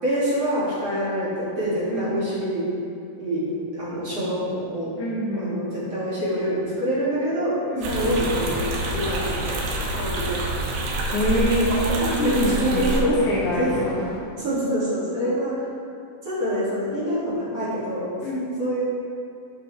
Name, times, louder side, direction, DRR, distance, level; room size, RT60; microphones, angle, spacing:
voice 1, 0.0-2.6 3.2-3.4 3.7-4.9 5.3-7.6 7.8-9.4 10.0-10.5 11.4-11.5 11.9-13.9 14.4-15.5 16.2-18.1 18.6-18.8, equal, 45° right, -11 dB, 2.9 m, -26 dB
voice 2, 5.0-5.6 7.7-7.9 11.1-12.9 13.2-14.1 18.2-18.4, equal, 70° left, -7 dB, 1.4 m, -25 dB
sound 1, 7.8-14.2, left 3 dB, 90° left, 3.2 m, -35 dB
sound 2, 7.8-13.0, right 2 dB, 85° right, 3.3 m, -27 dB
14.0 x 5.4 x 3.3 m, 2.6 s
omnidirectional pair, 4.7 m